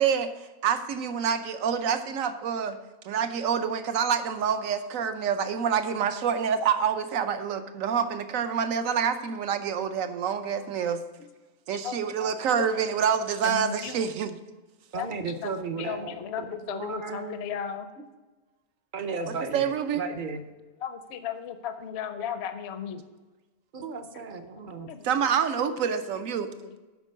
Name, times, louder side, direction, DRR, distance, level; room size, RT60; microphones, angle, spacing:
voice 1, 0.0-2.8 3.0-11.0 11.7-14.3 19.5-20.0 25.0-26.5, right 7 dB, 70° right, 9 dB, 1.1 m, -27 dB
voice 2, 13.4-14.0 14.9-15.1 15.4-18.0 20.8-23.0 24.1-25.2 26.4-26.8, left 8 dB, 55° left, 9 dB, 0.9 m, -36 dB
voice 3, 14.9-17.4 18.9-20.4 23.7-24.9, right 4 dB, 50° right, 8 dB, 0.6 m, -35 dB
8.3 x 5.3 x 6.5 m, 1.2 s
omnidirectional pair, 1.5 m